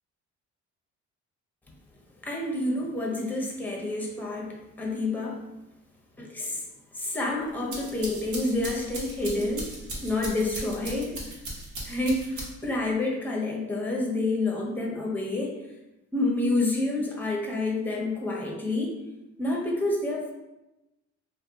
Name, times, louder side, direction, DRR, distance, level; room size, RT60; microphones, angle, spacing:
voice 1, 2.2-5.4 6.2-6.6 6.9-9.7 10.0-11.2 11.8-15.6 16.1-19.0 19.4-20.3, left 2 dB, 5° left, -2 dB, 0.6 m, -28 dB
sound 1, 7.5-12.8, right 1 dB, 70° right, 0.8 m, -38 dB
2.6 x 2.1 x 2.7 m, 0.98 s
cardioid pair, 90°, 30 cm